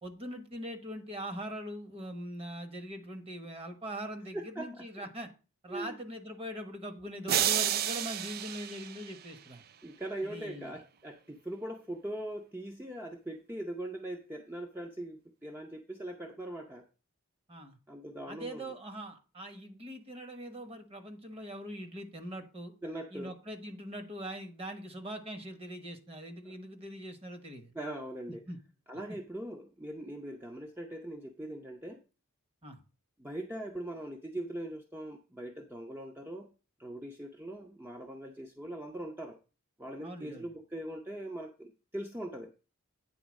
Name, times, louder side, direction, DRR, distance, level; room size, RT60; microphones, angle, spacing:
voice 1, 0.0-5.3 5.6-9.6 10.2-10.8 17.5-17.8 18.3-22.7 23.1-27.7 28.5-28.6 32.6-32.8 40.0-40.5, equal, 30° right, 6 dB, 1.2 m, -42 dB
voice 2, 4.3-5.1 5.7-6.0 9.8-16.8 17.9-18.7 22.8-23.4 26.4-26.5 27.7-28.4 28.9-32.0 33.2-36.5 36.8-39.4 39.8-42.5, right 1 dB, 10° right, 2 dB, 0.6 m, -41 dB
sound 1, 7.3-9.6, right 10 dB, 45° right, 0.3 m, -31 dB
9.1 x 3.9 x 6.2 m, 0.33 s
head